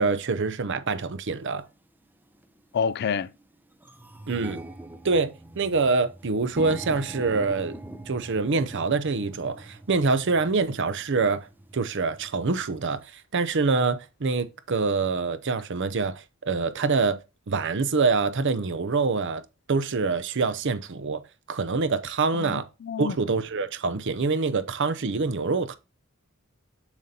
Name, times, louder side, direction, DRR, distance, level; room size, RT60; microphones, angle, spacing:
voice 1, 0.0-1.6 4.3-4.6 5.0-7.8 8.1-11.5 11.7-17.2 17.5-19.4 19.7-21.2 21.5-22.7 23.0-25.8, right 4 dB, 60° right, 0.6 m, -25 dB
sound 1, 1.5-1.6 2.3-2.6 3.0-3.1 3.3-13.0, right 1 dB, 10° right, 0.6 m, -43 dB
voice 2, 2.7-3.3 22.4-23.2, left 6 dB, 50° left, 0.3 m, -28 dB
7.3 x 6.7 x 2.8 m
head